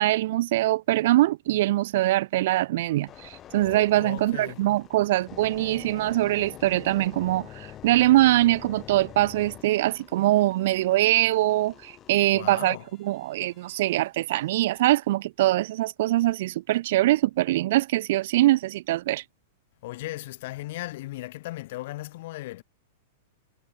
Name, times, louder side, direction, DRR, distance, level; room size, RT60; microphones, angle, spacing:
voice 1, 0.0-19.2, right 16 dB, 65° right, 0.5 m, -23 dB
sound 1, 3.1-14.0 14.6-14.8, left 11 dB, 30° left, 5.3 m, -46 dB
voice 2, 3.9-4.6 12.3-12.9 19.8-22.6, left 18 dB, 60° left, 2.9 m, -37 dB
hypercardioid pair, 110°, 0 cm